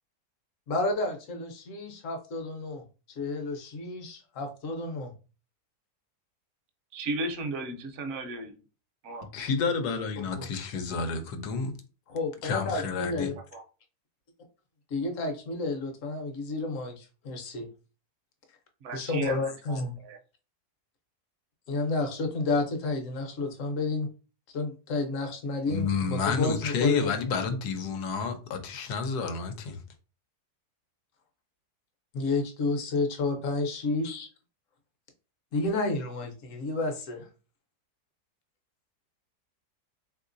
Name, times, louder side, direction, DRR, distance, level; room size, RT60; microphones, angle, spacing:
voice 1, 0.7-2.8 3.2-5.1 12.1-13.3 14.9-17.7 18.9-20.0 21.7-24.1 24.5-27.1 32.1-34.3 35.5-37.2, left 3 dB, 60° left, 1.0 m, -31 dB
voice 2, 6.9-8.6 9.0-9.3 13.5-13.6 18.8-20.2, right 2 dB, 65° right, 0.8 m, -35 dB
voice 3, 9.3-11.7 12.4-13.3 25.7-29.8, left 5 dB, 85° left, 1.2 m, -30 dB
3.7 x 2.9 x 2.5 m
omnidirectional pair, 1.7 m